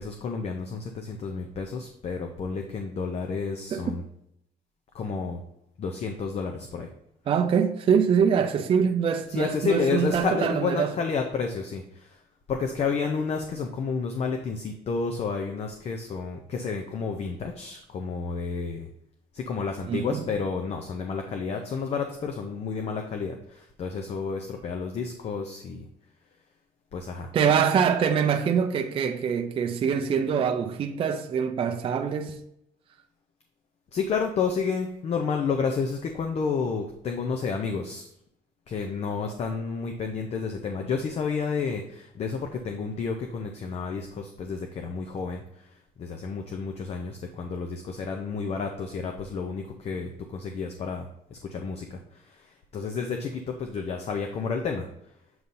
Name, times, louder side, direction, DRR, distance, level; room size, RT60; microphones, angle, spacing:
voice 1, 0.0-4.0 4.9-5.4 5.8-6.9 9.3-12.2 12.5-18.9 19.3-25.9 26.9-27.3 33.9-38.1 38.7-52.5 52.7-54.9, left 5 dB, 40° left, 0.6 m, -30 dB
voice 2, 7.3-11.0 19.9-20.2 27.3-32.4, right 7 dB, 35° right, 0.4 m, -24 dB
7.8 x 2.8 x 5.3 m
cardioid pair, 150°, 16 cm